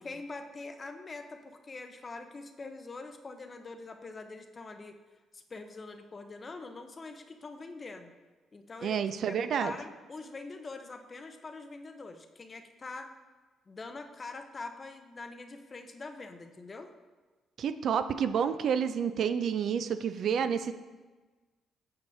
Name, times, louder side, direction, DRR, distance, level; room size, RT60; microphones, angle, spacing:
voice 1, 0.0-5.0 5.3-8.1 8.5-13.1 13.7-16.9, left 3 dB, 35° left, 7 dB, 0.6 m, -44 dB
voice 2, 8.8-9.7 17.6-20.7, right 7 dB, 65° right, 11 dB, 0.3 m, -29 dB
8.4 x 4.8 x 2.7 m, 1.3 s
cardioid pair, 90°, 0 cm